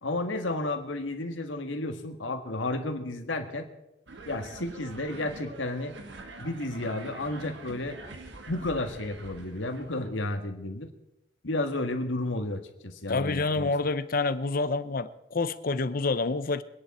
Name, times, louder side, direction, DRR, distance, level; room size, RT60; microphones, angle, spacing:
voice 1, 0.0-3.7 4.3-5.9 6.4-8.0 8.5-10.9 11.4-13.7, left 2 dB, 90° left, 6 dB, 1.7 m, -32 dB
sound 1, 4.1-10.1, right 2 dB, 70° right, 1.5 m, -45 dB
voice 2, 13.1-16.6, left 3 dB, 50° left, 13 dB, 0.7 m, -28 dB
24.5 x 10.0 x 4.3 m, 0.90 s
head